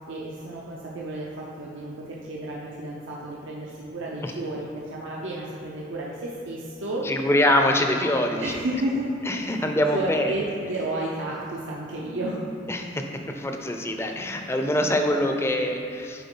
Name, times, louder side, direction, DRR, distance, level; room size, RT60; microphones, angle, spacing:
voice 1, 0.1-7.1 8.4-12.5, right 1 dB, 90° right, -4 dB, 0.7 m, -32 dB
voice 2, 7.0-8.5 9.3-10.3 12.7-16.2, left 1 dB, 15° left, 4 dB, 0.4 m, -24 dB
9.3 x 3.9 x 3.8 m, 2.6 s
head